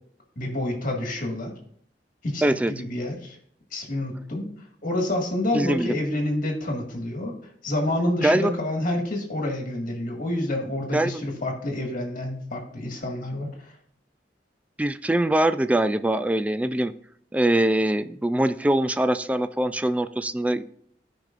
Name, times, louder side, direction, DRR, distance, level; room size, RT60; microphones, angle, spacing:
voice 1, 0.3-1.5 2.2-3.3 3.7-4.5 4.8-7.4 7.6-13.7, left 1 dB, 50° left, 1 dB, 1.8 m, -28 dB
voice 2, 2.4-2.7 5.5-5.9 8.2-8.6 10.9-11.2 14.8-16.9 17.3-20.7, right 1 dB, 10° right, 11 dB, 0.3 m, -23 dB
15.0 x 5.2 x 2.5 m, 0.63 s
head